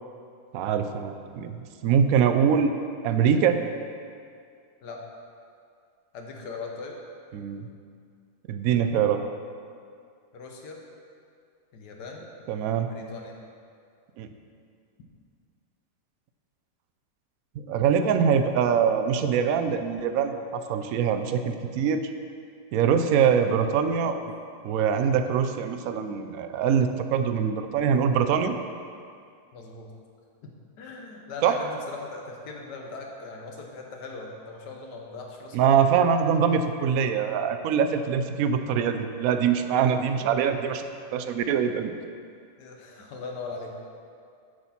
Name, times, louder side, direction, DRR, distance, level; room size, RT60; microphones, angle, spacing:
voice 1, 0.5-2.7 3.0-3.6 7.3-7.7 8.5-9.2 12.5-12.9 14.2-14.3 17.6-22.1 22.7-24.3 24.6-28.6 31.4-31.6 35.5-40.8 41.1-41.9, right 7 dB, 70° right, 8 dB, 0.9 m, -23 dB
voice 2, 6.1-7.0 10.3-10.8 11.7-12.3 12.8-13.4 23.0-23.2 29.5-29.9 30.4-35.8 42.6-43.7, left 3 dB, 80° left, 1 dB, 1.6 m, -40 dB
8.0 x 7.6 x 4.2 m, 2.3 s
omnidirectional pair, 1.8 m